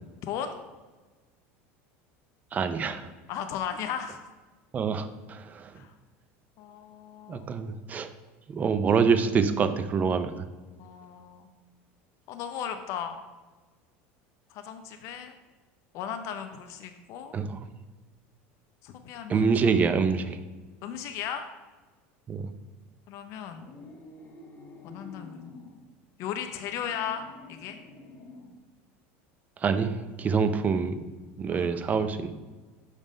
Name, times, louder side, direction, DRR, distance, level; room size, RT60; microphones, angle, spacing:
voice 1, 0.3-0.6 3.3-4.3 5.8-5.9 6.6-7.5 10.8-11.5 12.3-13.2 14.5-15.3 15.9-17.3 18.8-19.5 20.8-21.5 23.1-23.7 24.8-25.5 26.2-27.8 31.5-31.8, left 8 dB, 55° left, 7 dB, 0.5 m, -36 dB
voice 2, 2.5-3.1 4.7-5.7 7.3-8.1 8.5-10.3 17.3-17.7 19.3-20.4 22.3-22.5 29.6-31.0 31.4-32.3, right 5 dB, 25° right, 9 dB, 0.4 m, -26 dB
sound 1, 23.5-25.8 26.4-28.6, left 3 dB, 25° left, 1.1 m, -48 dB
6.4 x 3.7 x 4.9 m, 1.3 s
supercardioid pair, 130°, 6 cm